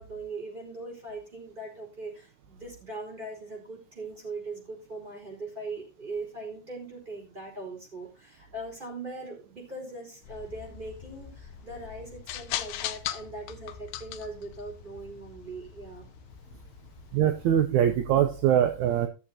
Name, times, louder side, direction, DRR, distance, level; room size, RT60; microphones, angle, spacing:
voice 1, 0.0-16.1, right 2 dB, 15° right, -1 dB, 4.8 m, -40 dB
sound 1, 10.2-17.6, left 11 dB, 80° left, 2.3 m, -40 dB
voice 2, 17.1-19.1, right 10 dB, 75° right, 7 dB, 1.8 m, -23 dB
17.5 x 7.1 x 2.8 m, 0.31 s
omnidirectional pair, 4.0 m